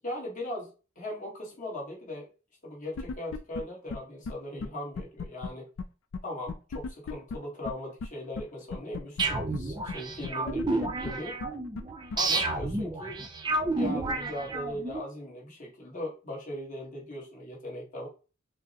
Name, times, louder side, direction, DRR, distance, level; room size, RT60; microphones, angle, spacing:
voice 1, 0.0-0.7 1.0-2.3 2.6-5.7 6.2-11.4 12.1-18.1, left 1 dB, 40° left, -2 dB, 1.2 m, -39 dB
sound 1, 3.0-3.6 3.9-4.0 4.2-4.3 4.6-4.7 5.0-5.5 5.8-5.9 6.1-6.2 6.5-7.4 7.6-7.7 8.0-8.1 8.4-8.5 8.7-9.2 9.5-9.6 9.9-10.0 10.2-11.1 11.4-11.5 11.7-11.8 12.1-12.2, left 4 dB, 70° left, 0.4 m, -35 dB
sound 2, 9.2-15.0, right 2 dB, 20° right, 0.5 m, -31 dB
5.8 x 2.0 x 2.8 m, 0.34 s
head